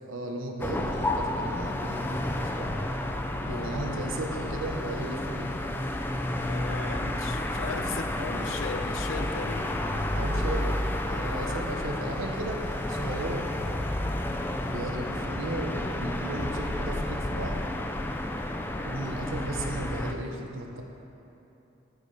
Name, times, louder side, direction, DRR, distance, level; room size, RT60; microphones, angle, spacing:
voice 1, 0.1-2.8 3.4-5.6 10.1-10.8 11.1-13.5 14.7-17.6 18.8-20.8, right 2 dB, 90° right, 2 dB, 1.1 m, -35 dB
sound 1, 0.6-20.1, left 1 dB, 10° left, 0.4 m, -31 dB
voice 2, 3.4-4.1 6.3-9.7, left 4 dB, 85° left, 6 dB, 0.7 m, -37 dB
12.0 x 9.5 x 3.3 m, 2.9 s
head